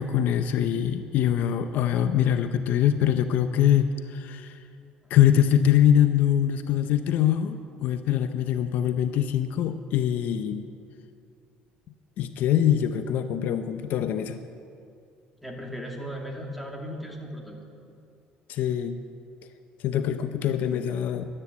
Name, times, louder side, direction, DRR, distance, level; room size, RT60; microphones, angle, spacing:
voice 1, 0.0-4.6 5.1-10.7 12.2-14.4 18.5-19.0 19.8-21.3, left 10 dB, 65° left, 9 dB, 0.6 m, -23 dB
voice 2, 15.4-17.6, equal, ahead, 0 dB, 2.2 m, -36 dB
12.0 x 9.8 x 8.1 m, 2.5 s
cardioid pair, 120°, 3 cm